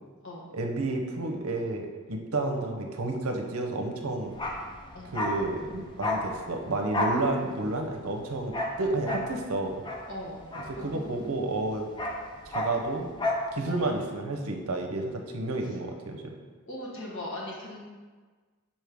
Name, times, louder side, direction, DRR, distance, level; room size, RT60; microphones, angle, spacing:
voice 1, 0.5-4.3 5.1-9.8 10.7-11.9 12.5-13.1 13.5-16.4, right 2 dB, 65° right, 3 dB, 0.7 m, -31 dB
Bark, 4.3-11.3 11.6-13.5 13.8-13.9, left 1 dB, 20° left, 0.5 m, -32 dB
voice 2, 10.1-10.4 10.8-11.4 13.6-13.9 16.7-17.8, left 1 dB, 55° left, -4 dB, 1.4 m, -39 dB
6.2 x 4.3 x 3.5 m, 1.4 s
head